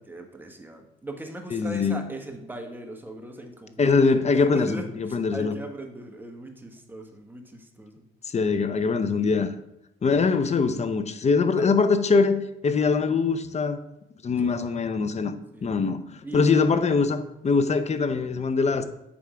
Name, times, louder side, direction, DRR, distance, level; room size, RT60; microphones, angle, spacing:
voice 1, 0.1-3.9 4.3-8.0 11.6-11.7 14.4-14.7 15.5-15.7 16.2-16.4, right 1 dB, 10° right, 1.2 m, -39 dB
voice 2, 1.5-2.0 3.8-5.5 8.3-9.5 10.0-13.8 14.2-15.3 15.6-18.8, left 4 dB, 35° left, 0.7 m, -23 dB
8.5 x 3.5 x 4.9 m
cardioid pair, 90°, 20 cm